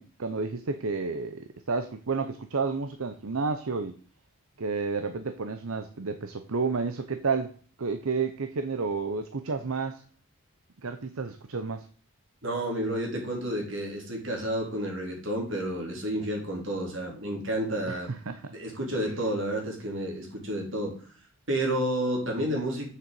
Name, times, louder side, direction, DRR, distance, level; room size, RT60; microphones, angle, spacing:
voice 1, 0.0-4.0 4.6-7.5 7.8-10.0 10.8-11.9 17.9-18.5, right 4 dB, 75° right, 0.7 m, -31 dB
voice 2, 12.4-18.2 18.5-21.0 21.5-22.9, right 1 dB, 60° right, 3.9 m, -30 dB
7.5 x 6.8 x 7.6 m
head